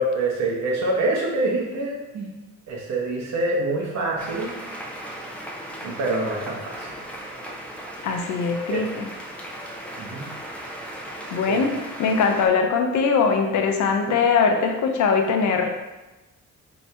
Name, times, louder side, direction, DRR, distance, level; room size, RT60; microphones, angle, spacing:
voice 1, 0.0-2.3 2.7-4.5 5.8-7.0 8.7-8.9 10.0-10.2 11.5-11.6, right 2 dB, 60° right, -1 dB, 0.9 m, -25 dB
sound 1, 4.2-12.5, right 1 dB, 5° left, 0.5 m, -37 dB
voice 2, 8.0-9.1 11.3-15.8, left 5 dB, 70° left, 4 dB, 0.5 m, -21 dB
2.9 x 2.6 x 3.3 m, 1.1 s
cardioid pair, 90°, 30 cm